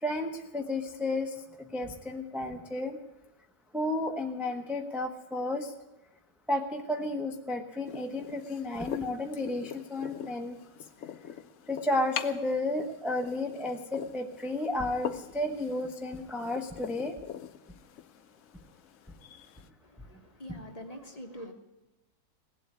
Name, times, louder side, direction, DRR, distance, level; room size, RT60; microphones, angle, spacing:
voice 1, 0.0-3.0 3.7-5.7 6.5-10.6 11.7-17.1 20.5-20.6, left 1 dB, ahead, 3 dB, 0.5 m, -32 dB
sound 1, 7.8-19.7, left 9 dB, 80° left, 0.6 m, -43 dB
voice 2, 20.0-21.5, equal, 25° left, 4 dB, 1.0 m, -44 dB
17.5 x 7.9 x 9.5 m, 1.0 s
omnidirectional pair, 2.1 m